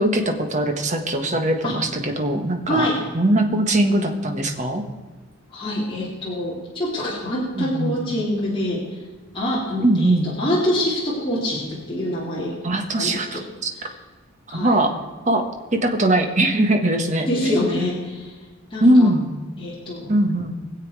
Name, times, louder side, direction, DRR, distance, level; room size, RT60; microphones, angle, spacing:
voice 1, 0.0-2.9 3.1-4.8 7.6-8.0 9.8-10.3 12.6-13.7 14.5-14.9 15.3-15.4 15.7-17.6 18.8-19.3 20.1-20.5, right 1 dB, 35° right, 4 dB, 1.4 m, -20 dB
voice 2, 5.5-8.8 9.3-12.6 13.0-13.4 14.5-14.8 17.3-18.3 18.7-19.1 19.6-20.2, left 1 dB, 25° left, -6 dB, 2.6 m, -25 dB
22.5 x 7.6 x 4.8 m, 1.3 s
head